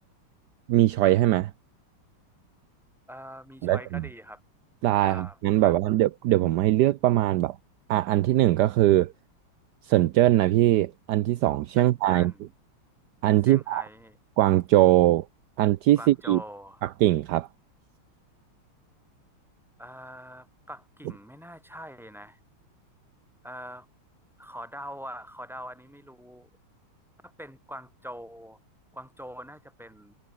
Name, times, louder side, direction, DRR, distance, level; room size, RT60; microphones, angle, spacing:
voice 1, 0.7-1.5 3.6-4.0 4.8-7.6 7.9-9.1 9.8-12.3 13.2-13.8 14.4-15.3 15.6-16.4 16.8-17.5, right 14 dB, 70° right, 1.0 m, -21 dB
voice 2, 3.1-4.4 5.0-5.8 11.8-12.4 13.5-14.2 16.0-16.8 19.8-22.4 23.4-23.9 24.4-26.5 27.2-28.6 28.9-30.1, equal, ahead, 7.2 m, -43 dB
omnidirectional pair, 2.4 m